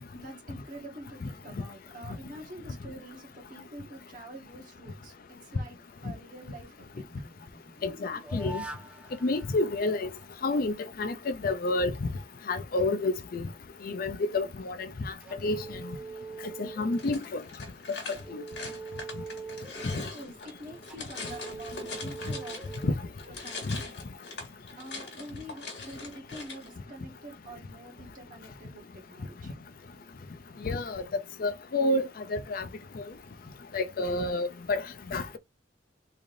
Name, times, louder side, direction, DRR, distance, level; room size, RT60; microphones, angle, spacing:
voice 1, 0.1-5.8 6.0-7.0 19.9-22.8 23.3-24.2 24.8-29.5, right 1 dB, 45° right, 1.5 m, -46 dB
sound 1, 6.7-10.7 15.2-17.5 18.0-23.7, right 3 dB, 5° right, 0.5 m, -44 dB
voice 2, 7.8-8.6 9.2-10.1 10.4-12.1 12.5-13.4 13.8-15.1 15.4-15.6 16.6-17.4 18.3-18.4 20.0-20.1 22.8-22.9 23.7-23.8 30.6-31.1 31.4-32.7 33.0-33.1 33.7-34.8 35.1-35.4, left 2 dB, 50° left, 0.4 m, -29 dB
sound 2, 16.9-22.9 23.2-26.7, left 3 dB, 70° left, 1.7 m, -42 dB
3.8 x 3.3 x 2.5 m
head